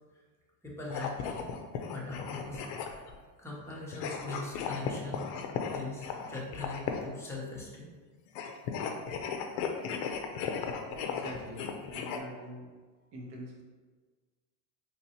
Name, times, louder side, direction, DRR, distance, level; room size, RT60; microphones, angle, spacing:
voice 1, 0.6-1.5 1.9-3.1 3.4-5.3 5.7-7.9, left 2 dB, 5° left, -5 dB, 0.7 m, -41 dB
sound 1, 0.8-3.2 3.9-7.2 8.3-12.2, left 6 dB, 55° left, 0.5 m, -36 dB
voice 2, 11.0-12.7 13.1-13.6, right 1 dB, 50° right, -2 dB, 1.0 m, -45 dB
4.4 x 3.1 x 2.8 m, 1.4 s
supercardioid pair, 135°, 50 cm